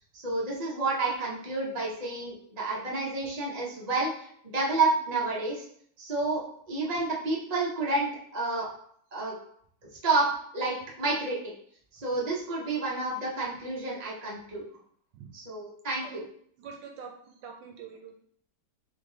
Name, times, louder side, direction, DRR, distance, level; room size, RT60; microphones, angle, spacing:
voice 1, 0.1-4.1 4.5-5.6 6.0-6.4 6.7-8.7 9.1-9.3 10.0-10.3 10.5-11.5 11.9-14.6 15.3-16.2, right 3 dB, 55° right, -4 dB, 0.4 m, -29 dB
voice 2, 16.6-17.1 17.4-18.2, right 6 dB, 70° right, 2 dB, 1.3 m, -44 dB
3.7 x 3.6 x 3.8 m, 0.64 s
omnidirectional pair, 2.3 m